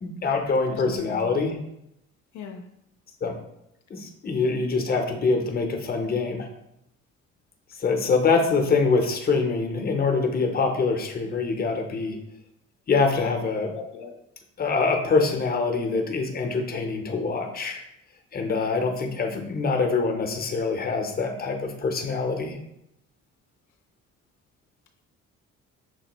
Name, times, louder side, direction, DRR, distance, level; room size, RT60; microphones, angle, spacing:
voice 1, 0.0-1.6 3.2-3.4 3.9-6.5 7.8-12.2 12.9-13.7 14.6-17.8 18.3-22.6, left 4 dB, 30° left, 4 dB, 0.6 m, -24 dB
voice 2, 0.7-1.3 2.3-2.6 13.7-14.2 19.3-19.5, left 6 dB, 75° left, 4 dB, 0.5 m, -39 dB
6.1 x 2.1 x 2.9 m, 0.81 s
cardioid pair, 90°, 30 cm